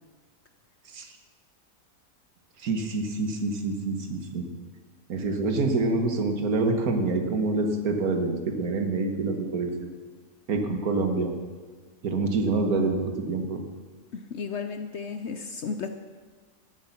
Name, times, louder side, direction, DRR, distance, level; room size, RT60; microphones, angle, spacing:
voice 1, 2.6-4.5 5.1-9.9 10.5-11.3 12.0-13.6, right 3 dB, 70° right, 5 dB, 1.8 m, -26 dB
voice 2, 14.1-15.9, left 5 dB, 55° left, 8 dB, 0.8 m, -34 dB
13.0 x 8.6 x 7.3 m, 1.4 s
omnidirectional pair, 1.7 m